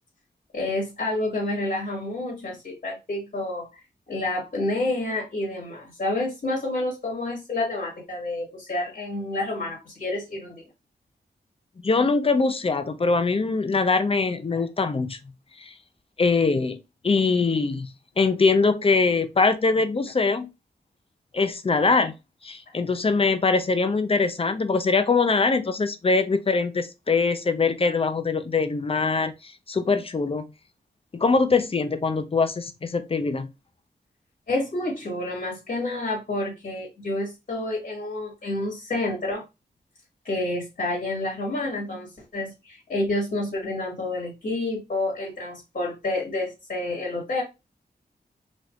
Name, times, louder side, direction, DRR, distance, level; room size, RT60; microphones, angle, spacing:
voice 1, 0.5-3.7 4.1-10.6 34.5-39.5 40.2-47.4, left 2 dB, 55° left, 1.8 m, -29 dB
voice 2, 11.8-15.2 15.6-15.7 16.2-17.9 18.2-20.5 21.3-22.1 22.4-30.4 31.1-33.5, left 4 dB, 35° left, 0.5 m, -23 dB
3.4 x 2.6 x 2.4 m
cardioid pair, 65°, 18 cm